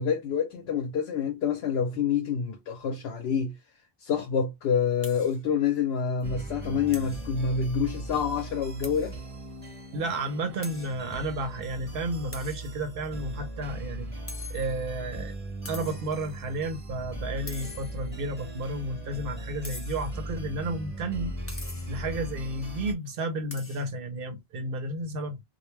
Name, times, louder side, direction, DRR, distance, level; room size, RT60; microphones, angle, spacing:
voice 1, 0.0-3.6 4.0-9.2 21.7-22.0, left 6 dB, 80° left, 0.8 m, -27 dB
sound 1, 5.0-5.4 5.8-5.9 6.2-6.3 6.9-7.3 8.8-9.2 9.7-9.8 10.6-11.0 12.3-13.1 14.3-15.0 15.6-16.2 17.5-18.2 19.6-20.2 21.5-22.1 23.5-23.9, left 2 dB, 20° left, 0.3 m, -44 dB
sound 2, 6.2-22.9, right 1 dB, 10° right, 0.9 m, -38 dB
voice 2, 9.9-14.1 14.5-15.3 15.7-21.3 21.9-25.4, right 2 dB, 65° right, 0.9 m, -32 dB
2.2 x 2.2 x 3.1 m
omnidirectional pair, 1.0 m